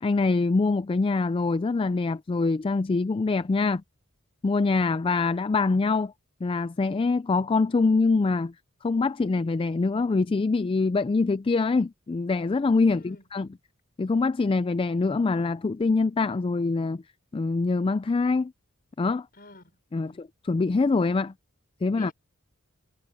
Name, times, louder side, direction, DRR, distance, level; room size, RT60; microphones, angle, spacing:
voice 1, 0.0-3.8 4.4-6.1 6.4-8.5 8.8-13.5 14.0-17.0 17.3-18.5 19.0-19.3 19.9-21.3 21.8-22.1, left 3 dB, 25° left, 0.3 m, -24 dB
voice 2, 12.9-13.3 19.3-19.7 20.0-20.3 22.0-22.1, left 2 dB, 45° left, 5.0 m, -49 dB
head